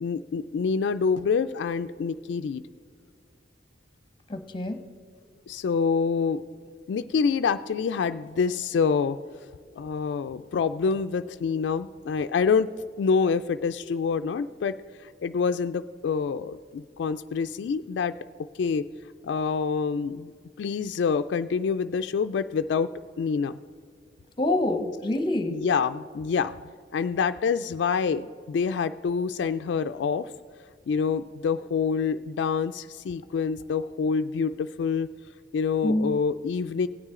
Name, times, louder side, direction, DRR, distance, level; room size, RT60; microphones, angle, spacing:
voice 1, 0.0-2.6 5.5-6.4 6.9-9.2 9.8-12.7 13.0-14.8 15.0-18.2 18.6-18.9 19.2-20.3 20.6-22.9 23.2-23.5 25.5-26.6 26.9-30.3 30.9-35.1 35.5-36.9, left 5 dB, 75° left, 10 dB, 0.3 m, -26 dB
voice 2, 4.3-4.8 24.4-25.6 35.8-36.2, left 1 dB, 25° left, 8 dB, 0.9 m, -26 dB
17.0 x 9.6 x 3.7 m, 2.1 s
head